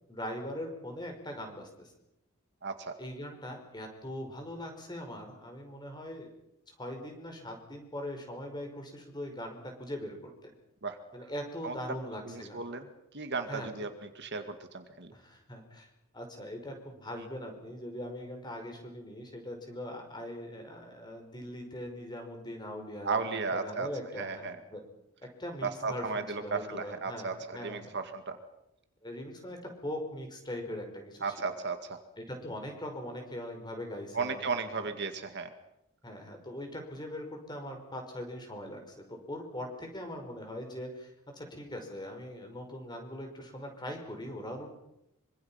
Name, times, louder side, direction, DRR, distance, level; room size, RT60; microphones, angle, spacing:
voice 1, 0.1-1.9 3.0-6.3 6.7-10.5 11.1-12.6 13.5-13.7 15.1-15.9 16.1-24.8 25.4-28.0 29.0-31.3 32.2-34.5 36.0-44.7, left 1 dB, 20° left, 4 dB, 5.4 m, -41 dB
voice 2, 2.6-2.9 10.8-11.0 11.6-11.7 12.3-12.9 13.1-13.9 14.2-15.1 23.0-23.9 24.2-24.6 25.6-28.4 31.2-32.0 34.1-35.5, right 4 dB, 50° right, 7 dB, 2.1 m, -35 dB
25.5 x 25.0 x 5.8 m, 0.82 s
head